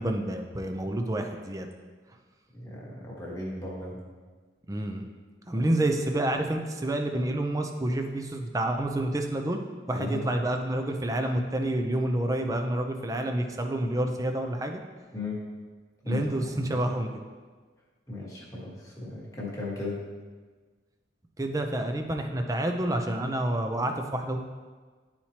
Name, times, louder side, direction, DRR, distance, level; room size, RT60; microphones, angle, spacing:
voice 1, 0.0-1.7 4.7-5.0 5.5-9.6 9.9-14.8 16.0-17.1 21.4-24.4, right 1 dB, 15° right, 4 dB, 0.5 m, -28 dB
voice 2, 2.5-4.0 5.5-5.7 9.9-10.3 15.1-15.4 16.0-16.9 18.1-20.0, left 2 dB, 15° left, -5 dB, 1.4 m, -36 dB
11.0 x 4.3 x 2.9 m, 1.4 s
head